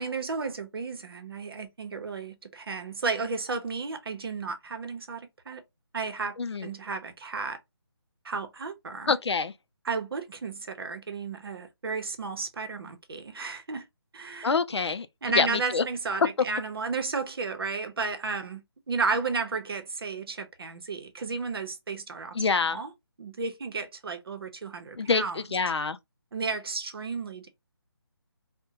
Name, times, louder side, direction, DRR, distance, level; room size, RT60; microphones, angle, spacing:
voice 1, 0.0-5.6 5.9-6.4 6.6-7.6 8.2-9.2 9.8-13.8 14.1-14.5 15.2-22.3 22.7-22.9 23.2-25.4 26.3-27.5, right 4 dB, 60° right, 0.8 m, -33 dB
voice 2, 6.4-6.7 9.1-9.5 14.4-15.1 15.3-15.8 22.3-22.8 24.9-26.0, left 4 dB, 85° left, 0.5 m, -26 dB
3.6 x 2.2 x 2.7 m
figure-of-eight pair, 160°, 14 cm